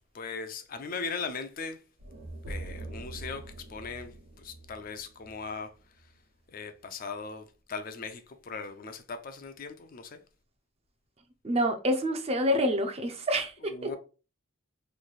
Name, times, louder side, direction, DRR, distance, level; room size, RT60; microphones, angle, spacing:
voice 1, 0.1-1.8 2.5-6.1 6.5-10.2 13.6-14.0, left 4 dB, 40° left, 0.4 m, -39 dB
sound 1, 2.0-6.1, right 2 dB, 85° right, 1.1 m, -43 dB
voice 2, 11.4-13.7, equal, 30° right, 0.5 m, -27 dB
3.1 x 2.6 x 4.0 m
head